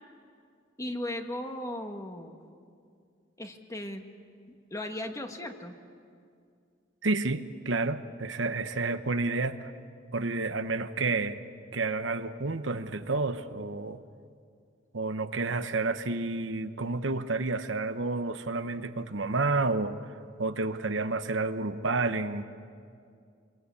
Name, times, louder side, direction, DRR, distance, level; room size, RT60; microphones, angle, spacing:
voice 1, 0.8-2.4 3.4-4.0 4.7-5.7, left 1 dB, 15° left, 5 dB, 1.6 m, -36 dB
voice 2, 7.0-9.7 10.1-11.4 11.7-14.0 14.9-20.1 20.4-22.4, right 3 dB, 75° right, 10 dB, 1.0 m, -30 dB
26.0 x 22.5 x 8.4 m, 2.3 s
head